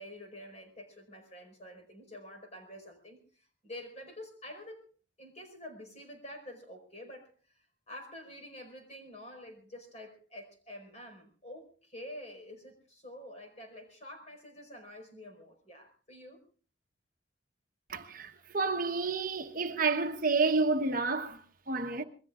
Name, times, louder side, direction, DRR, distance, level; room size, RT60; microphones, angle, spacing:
voice 1, 0.0-4.8 5.2-16.5, left 1 dB, 35° left, 4.9 m, -48 dB
voice 2, 17.9-22.0, right 4 dB, 45° right, 1.0 m, -30 dB
26.5 x 21.5 x 2.5 m
head